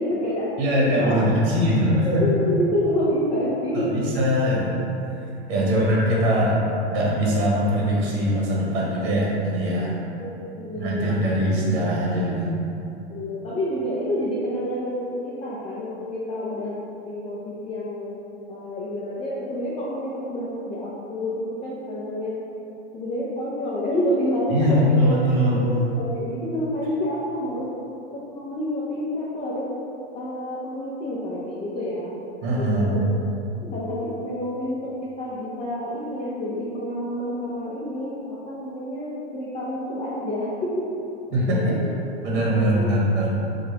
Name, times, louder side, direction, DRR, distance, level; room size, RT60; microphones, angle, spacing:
voice 1, 0.0-0.5 1.0-1.2 2.0-3.9 5.5-6.1 10.1-10.3 10.5-11.1 13.1-16.8 17.0-18.1 18.5-22.4 22.9-25.2 25.5-27.7 28.1-29.7 30.1-32.1 32.5-33.0 33.6-40.9 41.5-42.0 42.7-42.9, left 1 dB, 20° left, -7 dB, 0.5 m, -28 dB
voice 2, 0.6-2.2 3.7-4.8 5.5-6.6 6.9-10.0 10.7-12.5 24.5-25.6 32.4-33.0 41.3-41.6 42.2-43.3, equal, 55° right, -4 dB, 1.0 m, -21 dB
4.6 x 2.4 x 2.8 m, 2.8 s
hypercardioid pair, 105°, 34 cm